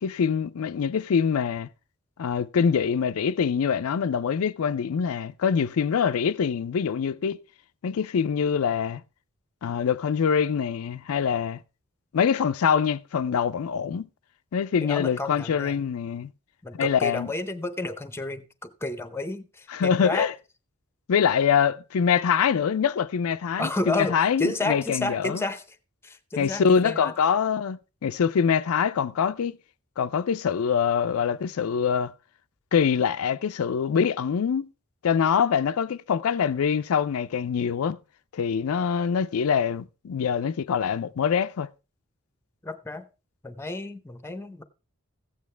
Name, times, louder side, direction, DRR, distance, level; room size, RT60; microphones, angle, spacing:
voice 1, 0.0-1.7 2.2-7.4 7.8-9.0 9.6-11.6 12.1-14.1 14.5-16.3 16.8-17.3 19.7-20.3 21.1-25.4 26.4-29.6 30.0-32.1 32.7-34.7 35.0-38.0 38.3-41.7, left 7 dB, 85° left, 0.4 m, -24 dB
voice 2, 14.8-15.8 16.6-20.3 23.6-25.6 26.0-27.1 42.6-43.1 43.4-44.6, left 2 dB, 10° left, 0.7 m, -31 dB
14.5 x 8.5 x 3.3 m
head